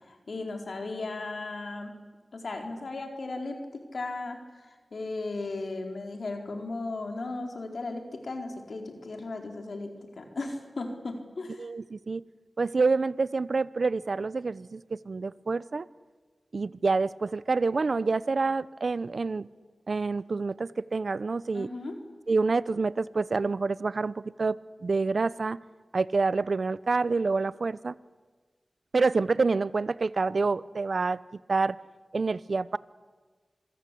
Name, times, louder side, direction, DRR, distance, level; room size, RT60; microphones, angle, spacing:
voice 1, 0.1-1.9 2.3-11.7 21.5-22.0, left 3 dB, 75° left, 3 dB, 4.4 m, -36 dB
voice 2, 11.6-12.2 12.6-15.9 16.5-19.5 19.9-21.7 22.3-25.6 25.9-27.9 28.9-31.2 31.5-31.8 32.1-32.8, right 4 dB, 65° right, 18 dB, 0.7 m, -27 dB
26.5 x 22.0 x 8.5 m, 1.4 s
wide cardioid pair, 60°, 0 cm